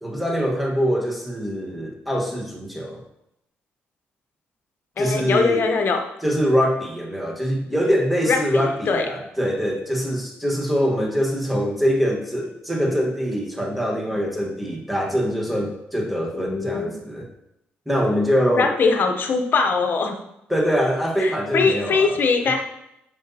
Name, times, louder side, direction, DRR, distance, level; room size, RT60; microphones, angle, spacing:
voice 1, 0.0-3.0 5.0-5.6 6.2-17.3 17.9-18.7 20.5-22.2, equal, ahead, 0 dB, 1.5 m, -23 dB
voice 2, 5.0-6.0 8.2-9.1 16.3-16.9 18.5-20.2 21.2-22.6, left 4 dB, 55° left, 5 dB, 0.9 m, -21 dB
8.0 x 5.3 x 2.9 m, 0.82 s
cardioid pair, 80°, 4 cm